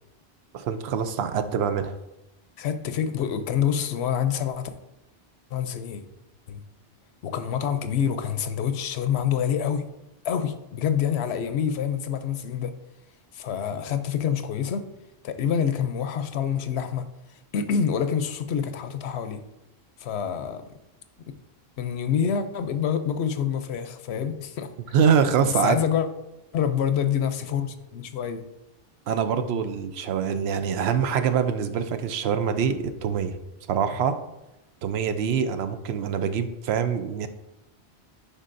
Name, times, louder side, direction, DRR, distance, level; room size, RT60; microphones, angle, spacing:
voice 1, 0.5-1.9 24.9-25.8 29.1-33.4 33.7-34.2 34.8-37.3, right 7 dB, 80° right, 9 dB, 0.8 m, -24 dB
voice 2, 2.6-4.7 5.5-6.0 6.5-6.6 7.2-9.8 10.2-12.7 13.3-14.9 15.2-17.0 17.5-19.4 20.0-20.6 21.8-24.7 25.4-26.1 26.5-28.4, left 8 dB, 85° left, 10 dB, 0.9 m, -26 dB
10.0 x 4.1 x 2.6 m, 0.92 s
omnidirectional pair, 1.1 m